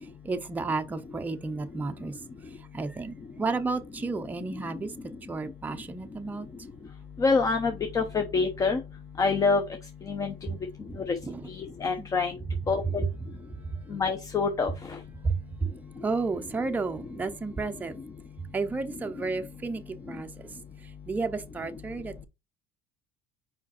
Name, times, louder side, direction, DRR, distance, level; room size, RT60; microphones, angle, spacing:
voice 1, 0.2-2.1 2.7-4.9 5.3-6.5 11.2-11.5 12.0-12.1 15.2-15.7 16.0-18.0 18.5-19.8 20.1-20.3 21.1-22.3, right 3 dB, 10° right, 0.6 m, -32 dB
voice 2, 7.2-8.8 9.2-9.6 10.1-10.3 11.5-12.3 12.7-13.0 13.9-14.7, left 4 dB, 25° left, 0.8 m, -26 dB
5.0 x 5.0 x 4.2 m
cardioid pair, 135°, 14 cm